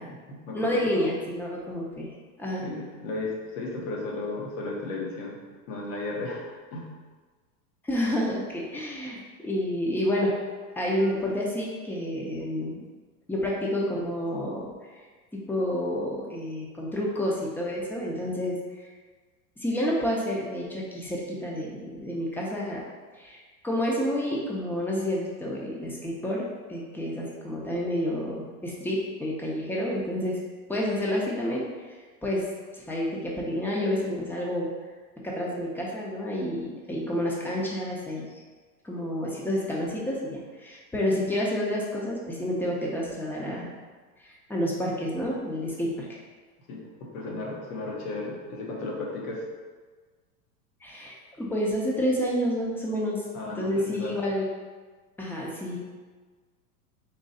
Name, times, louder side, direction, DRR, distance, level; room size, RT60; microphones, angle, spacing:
voice 1, 0.0-0.8 2.6-5.4 5.7-6.4 6.7-6.9 41.1-41.2 46.7-49.4 53.3-54.1, left 2 dB, 60° left, -2 dB, 1.4 m, -34 dB
voice 2, 0.5-2.1 2.4-2.6 7.8-10.3 10.8-12.8 13.3-14.6 15.5-18.9 19.6-22.8 23.2-30.4 30.7-31.7 32.2-32.5 32.7-34.7 35.2-38.3 38.8-43.7 44.2-46.2 50.8-53.2 53.5-54.5 55.2-55.8, equal, 5° left, -3 dB, 0.6 m, -29 dB
3.8 x 3.0 x 4.1 m, 1.4 s
hypercardioid pair, 120°, 47 cm